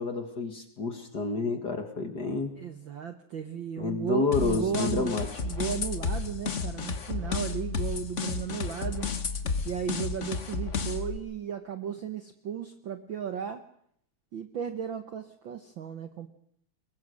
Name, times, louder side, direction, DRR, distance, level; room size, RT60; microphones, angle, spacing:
voice 1, 0.0-2.5 3.8-5.3, left 4 dB, 40° left, 6 dB, 1.9 m, -29 dB
voice 2, 2.6-5.1 5.4-9.1 9.6-13.6 14.3-16.3, right 8 dB, 60° right, 8 dB, 1.3 m, -35 dB
sound 1, 4.3-11.2, left 4 dB, 65° left, 0.7 m, -32 dB
22.5 x 21.5 x 6.4 m, 0.66 s
omnidirectional pair, 3.5 m